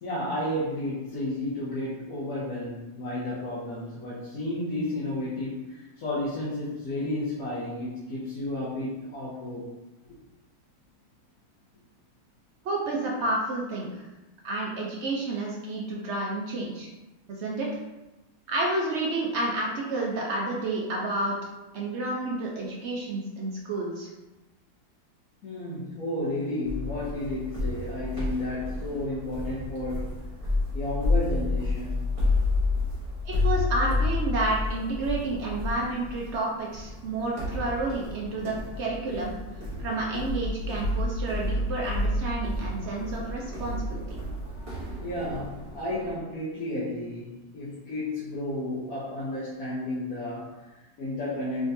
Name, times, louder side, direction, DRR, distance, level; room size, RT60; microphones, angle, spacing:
voice 1, 0.0-9.6 25.4-30.2 30.7-32.0 45.0-51.7, left 1 dB, 60° left, -8 dB, 1.2 m, -32 dB
voice 2, 12.6-14.0 14.4-16.9 17.3-17.7 18.5-21.4 21.7-24.1 33.2-39.3 39.8-44.0, right 2 dB, 80° right, -3 dB, 0.6 m, -30 dB
sound 1, 26.6-46.2, left 2 dB, 25° right, 0.9 m, -30 dB
3.7 x 3.5 x 2.6 m, 1.1 s
omnidirectional pair, 1.9 m